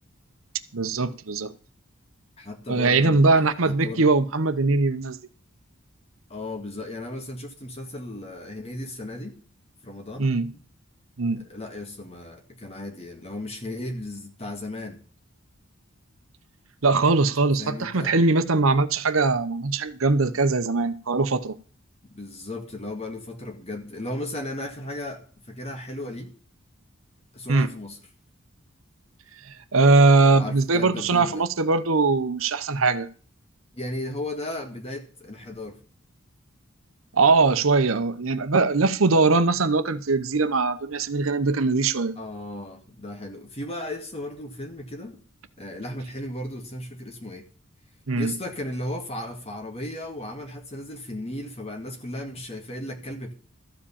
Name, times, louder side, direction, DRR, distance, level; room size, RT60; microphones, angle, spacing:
voice 1, 0.7-1.5 2.7-5.2 10.2-10.5 11.2-11.4 16.8-21.6 27.5-27.7 29.5-33.1 37.1-42.1 48.1-48.3, right 3 dB, 80° right, 0.9 m, -21 dB
voice 2, 2.4-4.1 6.3-9.4 9.8-10.6 11.3-15.0 17.6-18.2 22.1-26.3 27.3-28.0 30.2-31.5 33.7-35.8 42.2-45.2 45.6-47.5 48.2-53.3, left 1 dB, 30° left, 2.1 m, -35 dB
13.5 x 5.2 x 8.5 m
head